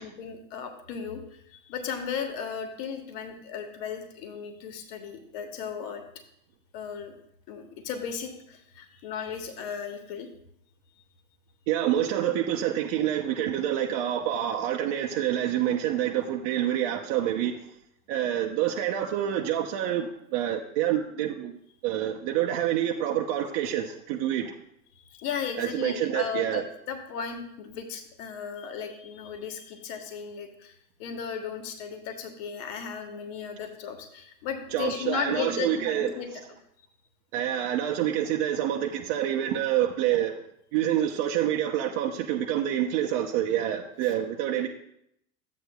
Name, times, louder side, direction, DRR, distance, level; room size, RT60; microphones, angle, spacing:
voice 1, 0.0-6.0 6.7-7.1 7.5-10.3 24.9-30.7 31.0-36.3, left 7 dB, 50° left, 5 dB, 1.5 m, -35 dB
voice 2, 11.7-17.7 18.1-24.6 25.6-26.6 34.7-36.1 37.3-40.4 40.7-44.7, right 11 dB, 45° right, 1 dB, 0.7 m, -27 dB
12.5 x 8.4 x 2.3 m, 0.74 s
hypercardioid pair, 105°, 43 cm